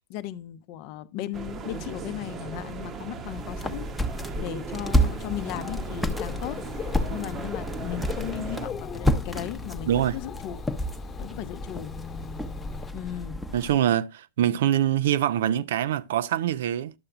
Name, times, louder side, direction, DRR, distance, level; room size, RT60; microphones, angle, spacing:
voice 1, 0.1-3.9 4.4-6.6 7.1-10.6 11.2-11.9 12.9-13.4, left 12 dB, 45° left, 0.7 m, -36 dB
sound 1, 1.3-8.7, right 5 dB, 25° right, 0.9 m, -38 dB
sound 2, 3.3-13.8, equal, ahead, 0.8 m, -30 dB
Dog / Bird, 4.9-12.9, left 7 dB, 25° left, 1.2 m, -41 dB
voice 2, 9.9-10.2 13.5-16.9, right 11 dB, 55° right, 0.4 m, -24 dB
11.5 x 7.6 x 2.4 m
figure-of-eight pair, 90°, 0 cm